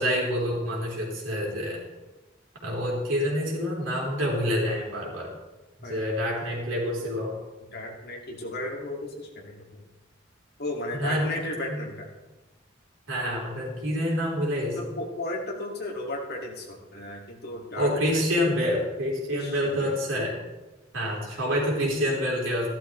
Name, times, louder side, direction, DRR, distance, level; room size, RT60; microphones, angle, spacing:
voice 1, 0.0-1.8 2.6-5.3 5.8-7.3 11.0-11.3 11.7-11.8 13.1-14.8 17.8-20.4 20.9-22.7, equal, 80° right, -3 dB, 3.6 m, -27 dB
voice 2, 7.7-9.8 10.6-12.1 14.7-18.3 19.3-20.0, left 1 dB, 55° left, -1 dB, 2.2 m, -35 dB
14.0 x 11.5 x 3.2 m, 1.1 s
head